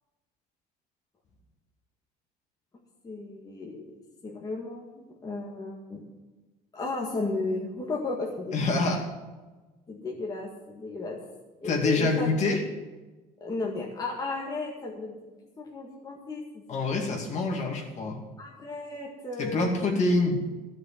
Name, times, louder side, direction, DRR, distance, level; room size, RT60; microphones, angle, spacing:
voice 1, 3.0-4.0 4.2-6.0 6.7-8.5 9.9-11.2 11.6-12.3 13.4-15.2 15.6-17.1 18.4-19.7, left 2 dB, 20° left, -2 dB, 1.9 m, -34 dB
voice 2, 8.5-9.1 11.6-12.7 16.7-18.2 19.4-20.4, left 3 dB, 45° left, 1 dB, 2.4 m, -26 dB
13.5 x 6.5 x 8.7 m, 1.2 s
cardioid pair, 135°, 16 cm